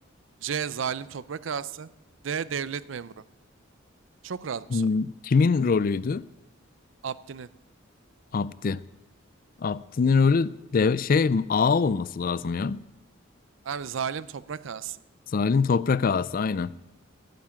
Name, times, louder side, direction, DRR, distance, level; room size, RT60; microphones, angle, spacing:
voice 1, 0.4-1.9 2.2-3.2 4.2-4.9 7.0-7.5 13.6-15.0, right 7 dB, 70° right, 0.5 m, -33 dB
voice 2, 4.7-6.2 8.3-8.8 9.6-12.8 15.3-16.7, left 5 dB, 45° left, 0.4 m, -23 dB
11.0 x 9.6 x 8.8 m
head